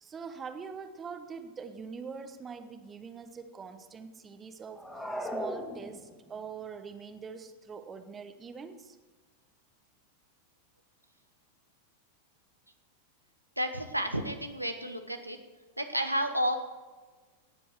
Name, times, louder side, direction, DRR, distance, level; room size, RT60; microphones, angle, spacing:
voice 1, 0.0-4.9 5.2-9.0, right 5 dB, 20° right, 9 dB, 1.1 m, -43 dB
sound 1, 4.7-6.4, equal, 5° left, 2.1 m, -37 dB
voice 2, 13.6-15.4 15.8-16.6, equal, 90° right, 6 dB, 1.1 m, -31 dB
19.0 x 7.7 x 4.7 m, 1.3 s
figure-of-eight pair, 90°, 0 cm